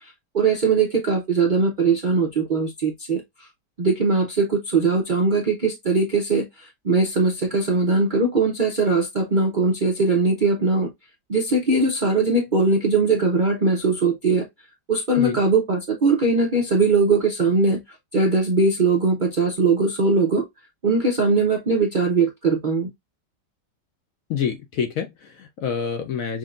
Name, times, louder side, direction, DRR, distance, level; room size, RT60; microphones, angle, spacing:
voice 1, 0.3-3.2 3.8-6.5 6.8-10.9 11.3-14.4 14.9-17.8 18.1-20.4 20.8-22.9, right 3 dB, 50° right, 0.5 m, -20 dB
voice 2, 24.3-26.4, left 7 dB, 65° left, 0.9 m, -27 dB
6.1 x 2.2 x 2.4 m
omnidirectional pair, 1.9 m